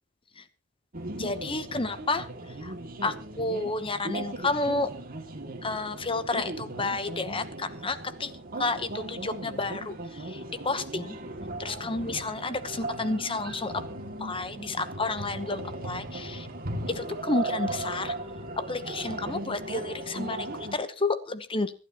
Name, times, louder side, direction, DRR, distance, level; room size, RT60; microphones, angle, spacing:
sound 1, 0.9-20.8, right 2 dB, 40° right, 2.4 m, -37 dB
voice 1, 1.1-2.3 2.6-2.7 3.0-4.9 5.6-8.3 8.6-11.2 11.6-13.8 14.2-16.5 16.9-18.1 18.6-21.7, left 3 dB, 25° left, 12 dB, 1.0 m, -31 dB
26.0 x 11.5 x 3.0 m, 0.33 s
head